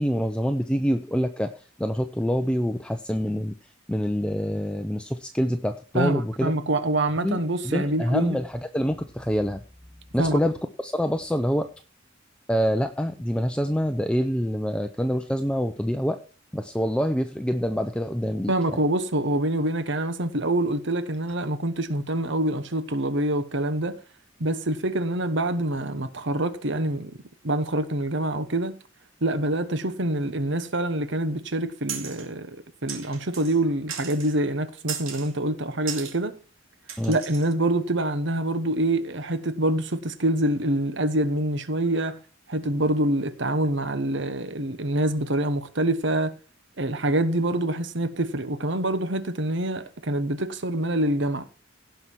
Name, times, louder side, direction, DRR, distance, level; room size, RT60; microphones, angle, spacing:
voice 1, 0.0-1.5 1.8-3.5 3.9-6.5 7.2-7.4 7.6-9.6 10.1-10.5 10.8-11.7 12.5-16.2 16.5-18.5 37.0-37.1, equal, 5° left, 0.6 m, -26 dB
voice 2, 5.9-8.4 10.2-10.4 18.5-24.0 24.4-27.2 27.4-28.8 29.2-32.6 32.8-36.4 37.1-42.2 42.5-46.4 46.8-51.4, right 1 dB, 60° right, 1.2 m, -26 dB
sound 1, 31.9-32.3 32.9-33.6 33.9-34.3 34.9-35.3 35.9-36.2 36.9-37.5, right 7 dB, 80° right, 2.3 m, -36 dB
17.0 x 5.8 x 4.7 m
head